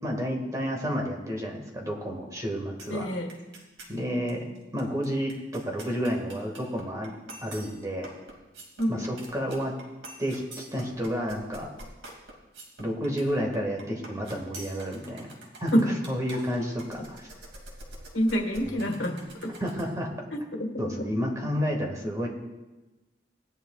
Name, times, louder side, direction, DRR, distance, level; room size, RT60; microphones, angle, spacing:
voice 1, 0.0-3.0 3.9-4.4 4.7-7.1 7.4-8.1 8.9-9.7 10.2-10.4 10.7-11.7 12.8-15.3 15.6-15.7 16.1-17.3 18.7-18.8 19.6-20.1 20.8-22.3, equal, 20° right, 0 dB, 1.9 m, -30 dB
sound 1, 2.8-3.0 3.3-3.9 4.3-4.4 4.6-19.9, right 1 dB, 80° right, 2.6 m, -46 dB
voice 2, 2.9-3.3 8.8-9.1 15.7-15.9 18.1-19.6 20.3-20.9, equal, 85° left, 3 dB, 1.7 m, -27 dB
18.0 x 10.5 x 2.4 m, 1.1 s
head